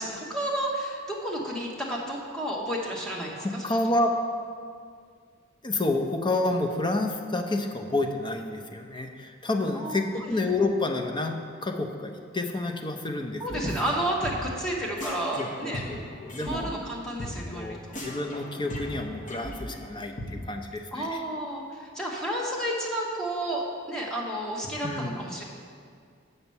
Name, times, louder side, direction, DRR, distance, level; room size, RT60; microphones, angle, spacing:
voice 1, 0.0-3.8 9.7-10.4 13.4-15.8 16.4-17.9 20.9-25.4, right 1 dB, 5° left, -3 dB, 1.2 m, -31 dB
voice 2, 3.4-4.1 5.6-13.4 13.7-13.8 15.4-16.7 17.5-21.2 24.8-25.2, left 2 dB, 25° left, 4 dB, 0.6 m, -29 dB
sound 1, 13.5-14.0 14.2-14.6 15.0-16.6 16.8-16.9 17.2-17.3 17.6-17.7 17.9-19.9 20.2-20.3, equal, 40° left, 1.2 m, -38 dB
7.0 x 5.5 x 7.0 m, 2.1 s
head